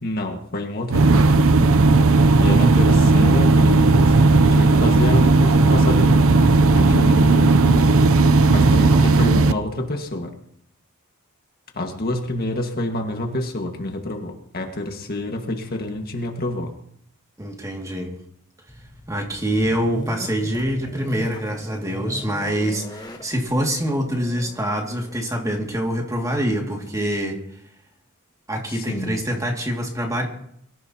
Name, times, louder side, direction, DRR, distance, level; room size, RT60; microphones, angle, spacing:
voice 1, 0.0-1.4 2.4-4.1 4.4-6.4 6.7-7.5 8.5-10.3 11.7-16.7 28.7-29.2, left 1 dB, 45° left, 3 dB, 1.8 m, -27 dB
sound 1, 0.9-9.5, right 3 dB, 70° right, 0.7 m, -15 dB
voice 2, 8.8-9.1 17.4-18.1 19.1-27.4 28.5-30.3, equal, 15° right, 1 dB, 2.4 m, -25 dB
sound 2, 18.7-26.4, equal, 20° left, 1.2 m, -38 dB
23.5 x 15.0 x 3.0 m, 0.69 s
head